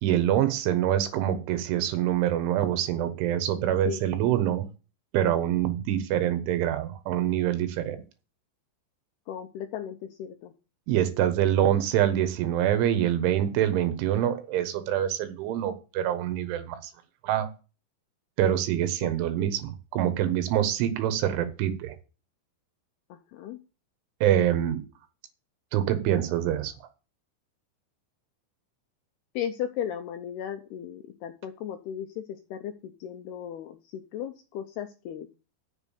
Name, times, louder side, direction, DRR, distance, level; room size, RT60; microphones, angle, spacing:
voice 1, 0.0-4.7 5.1-8.0 10.9-16.9 17.2-17.5 18.4-22.0 24.2-24.8 25.7-26.7, right 11 dB, 80° right, 11 dB, 3.6 m, -25 dB
voice 2, 9.3-10.5 19.0-19.1 19.4-19.5 23.1-23.6 29.4-32.2 32.5-35.3, left 9 dB, 80° left, 7 dB, 2.3 m, -36 dB
8.1 x 7.3 x 8.3 m, 0.32 s
omnidirectional pair, 5.6 m